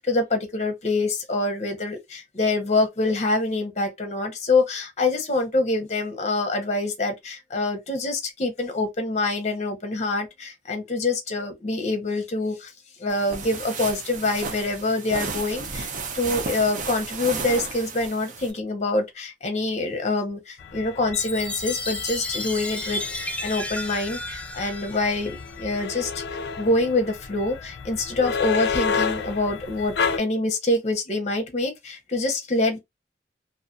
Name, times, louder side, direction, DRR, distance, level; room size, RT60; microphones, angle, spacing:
voice 1, 0.0-12.7 13.0-15.9 16.1-26.2 26.6-32.8, left 2 dB, 40° left, 0.8 m, -25 dB
sound 1, 13.1-18.5, right 4 dB, 45° right, 0.6 m, -33 dB
sound 2, 20.6-30.2, left 5 dB, 65° left, 0.4 m, -31 dB
Chime, 21.1-25.7, left 1 dB, 5° left, 0.4 m, -33 dB
2.5 x 2.4 x 2.5 m
head